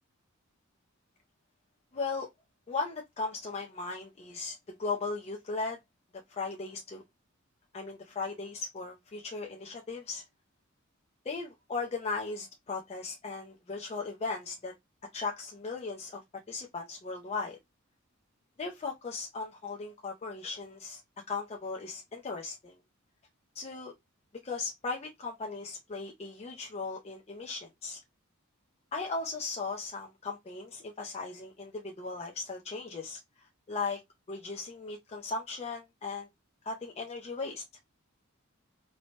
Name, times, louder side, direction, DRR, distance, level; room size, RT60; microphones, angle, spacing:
voice 1, 1.9-2.3 2.7-5.8 6.3-7.0 7.7-10.2 11.3-14.7 15.1-16.2 16.5-17.6 18.6-21.0 21.3-22.7 23.6-23.9 24.4-28.0 28.9-33.2 33.7-34.0 34.3-36.3 36.6-37.6, left 4 dB, 30° left, 0.4 m, -37 dB
2.7 x 2.1 x 3.1 m
head